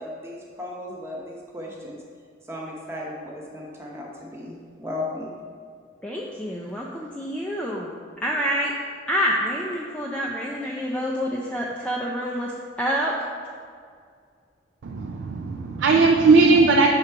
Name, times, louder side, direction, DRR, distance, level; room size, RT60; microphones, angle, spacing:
voice 1, 0.0-2.0 2.5-5.3, left 1 dB, 15° right, -3 dB, 0.9 m, -35 dB
voice 2, 6.0-7.9 8.2-8.7 9.1-13.1, equal, 5° left, -3 dB, 0.4 m, -27 dB
voice 3, 14.8-16.9, right 3 dB, 75° right, 2 dB, 0.4 m, -18 dB
6.0 x 3.8 x 4.5 m, 2.1 s
head